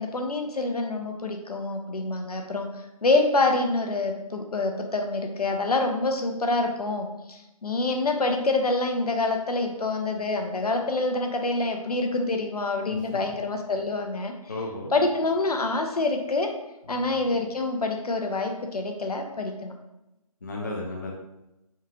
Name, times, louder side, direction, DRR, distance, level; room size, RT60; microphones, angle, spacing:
voice 1, 0.0-2.7 3.0-14.3 14.9-16.5 16.9-19.7, left 2 dB, 75° left, 4 dB, 0.6 m, -26 dB
voice 2, 14.5-14.9 16.9-17.1 20.4-21.1, left 2 dB, 30° left, -2 dB, 0.4 m, -34 dB
3.6 x 2.3 x 2.9 m, 0.93 s
figure-of-eight pair, 155°, 20 cm